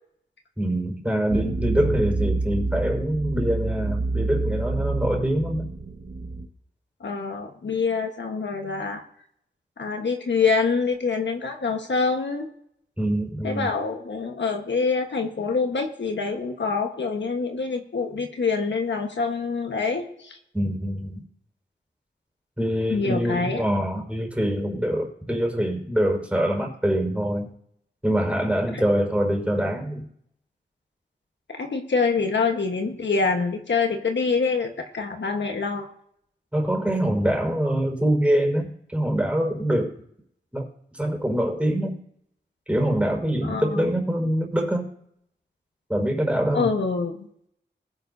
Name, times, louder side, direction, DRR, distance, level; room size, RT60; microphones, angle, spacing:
voice 1, 0.6-5.7 13.0-13.7 20.5-21.2 22.6-27.5 28.0-30.0 36.5-38.7 38.9-39.9 40.5-40.7 40.9-42.0 42.7-44.8 45.9-46.7, equal, 5° right, 1 dB, 5.0 m, -24 dB
sound 1, 1.3-6.5, right 3 dB, 60° right, 1.5 m, -28 dB
voice 2, 7.0-9.0 9.8-12.5 13.4-20.4 22.9-23.6 28.7-28.8 31.6-35.9 43.4-43.9 46.5-47.3, left 4 dB, 70° left, 3 dB, 1.4 m, -25 dB
20.5 x 9.7 x 2.7 m, 0.71 s
wide cardioid pair, 60°, 19 cm